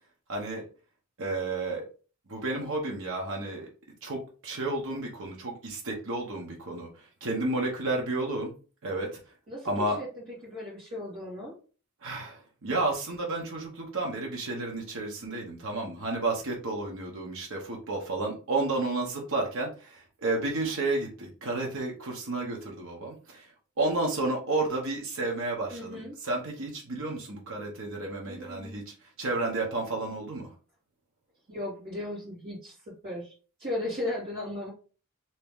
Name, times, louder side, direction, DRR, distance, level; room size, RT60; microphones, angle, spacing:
voice 1, 0.3-0.6 1.2-1.9 2.3-3.7 4.0-6.9 7.2-8.5 8.8-9.2 9.6-10.0 12.0-23.5 23.8-28.8 29.2-30.5, right 2 dB, 65° right, 0 dB, 0.9 m, -31 dB
voice 2, 9.5-11.5 15.2-15.3 25.7-26.2 28.3-28.8 31.5-32.8 33.0-33.3 33.6-34.7, left 1 dB, 45° right, -9 dB, 1.7 m, -36 dB
2.9 x 2.9 x 3.6 m, 0.37 s
head